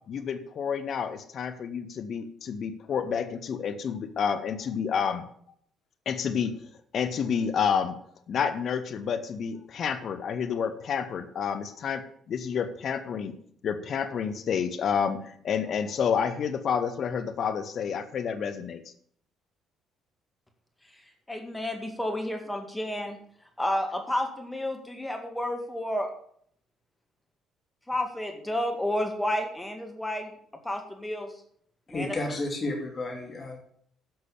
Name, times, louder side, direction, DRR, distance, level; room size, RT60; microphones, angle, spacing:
voice 1, 0.1-5.2 6.1-6.6 6.9-8.0 8.3-13.3 13.6-18.8, left 7 dB, 55° left, 11 dB, 1.2 m, -29 dB
voice 2, 21.3-23.2 23.6-26.1 27.9-30.4 30.6-31.3 31.9-32.1, left 1 dB, 10° left, 4 dB, 1.9 m, -31 dB
voice 3, 31.9-33.6, left 2 dB, 40° left, 1 dB, 2.7 m, -32 dB
10.5 x 6.2 x 7.0 m, 0.63 s
hypercardioid pair, 55°, 0 cm